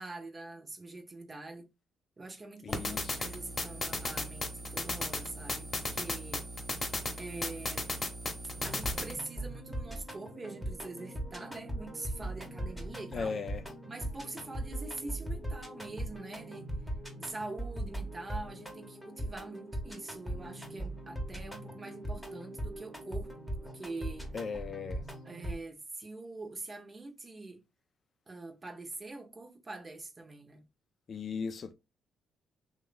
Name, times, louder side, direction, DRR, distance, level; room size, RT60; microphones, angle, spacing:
voice 1, 0.0-1.7 2.2-6.5 7.2-7.9 8.6-13.3 13.9-23.3 23.6-24.3 25.2-27.6 28.3-30.6, right 2 dB, 30° right, 0.8 m, -44 dB
voice 2, 2.6-3.2 13.1-13.6 24.3-25.1 31.1-31.7, left 5 dB, 50° left, 0.4 m, -37 dB
sound 1, 2.7-9.1, left 2 dB, 30° left, 1.0 m, -36 dB
sound 2, 8.6-25.6, right 1 dB, ahead, 0.9 m, -40 dB
3.1 x 2.3 x 3.8 m
cardioid pair, 90°, 0 cm